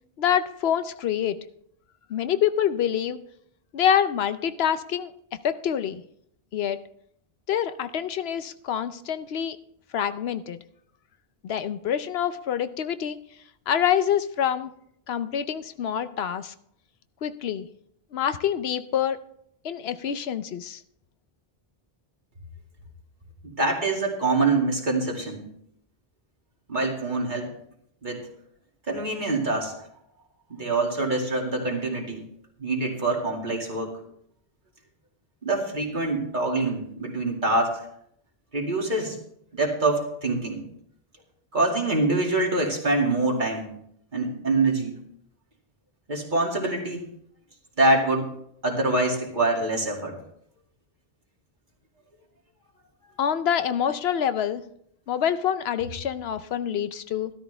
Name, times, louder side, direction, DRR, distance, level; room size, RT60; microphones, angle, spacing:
voice 1, 0.2-1.4 2.1-3.2 3.7-5.1 5.4-6.0 6.5-6.8 7.5-9.6 9.9-10.6 11.4-13.2 13.7-14.7 15.1-16.5 17.2-17.7 18.1-19.2 19.6-20.8 53.2-54.6 55.1-57.3, left 9 dB, 75° left, 12 dB, 0.9 m, -26 dB
voice 2, 23.4-25.4 26.7-27.5 28.0-28.3 28.9-29.7 30.5-32.2 32.6-33.9 35.4-37.8 38.5-39.2 39.5-40.6 41.5-43.7 44.1-45.0 46.1-47.1 47.8-48.3 48.6-50.2, right 2 dB, 50° right, -1 dB, 2.5 m, -25 dB
13.0 x 13.0 x 3.3 m, 0.70 s
omnidirectional pair, 1.1 m